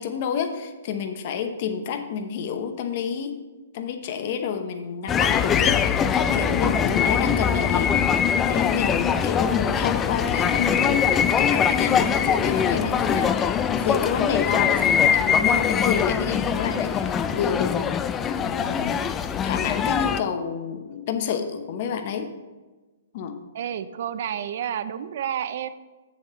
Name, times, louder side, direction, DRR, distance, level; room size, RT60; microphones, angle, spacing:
voice 1, 0.0-3.4 3.7-11.1 11.4-17.8 18.4-22.3 23.1-23.4, left 7 dB, 50° left, 7 dB, 0.9 m, -29 dB
sound 1, 5.1-20.2, left 7 dB, 20° left, 0.3 m, -22 dB
voice 2, 23.5-25.7, right 9 dB, 55° right, 13 dB, 0.5 m, -30 dB
7.2 x 7.1 x 4.3 m, 1.2 s
hypercardioid pair, 135°, 0 cm